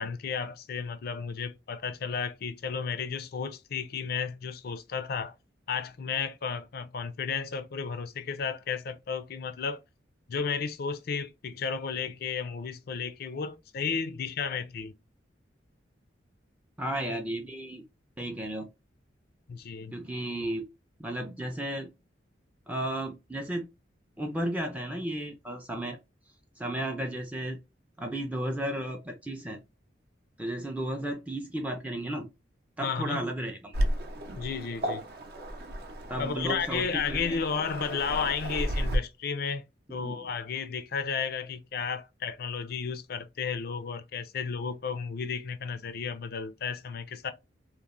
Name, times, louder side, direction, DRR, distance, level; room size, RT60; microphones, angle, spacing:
voice 1, 0.0-5.4 5.7-9.8 10.3-14.9 19.5-20.0 32.8-33.2 34.4-35.1 36.2-39.6 39.9-47.3, left 6 dB, 55° left, 0.4 m, -33 dB
voice 2, 16.8-17.8 18.2-18.7 19.9-20.7 21.0-21.9 22.7-23.7 24.2-26.0 26.6-27.6 28.0-29.6 30.4-32.3 32.8-33.7 36.1-37.4 39.9-40.3, right 1 dB, 10° right, 0.4 m, -34 dB
Waves surf, 33.7-39.0, equal, 55° right, 0.6 m, -33 dB
2.9 x 2.0 x 2.4 m
head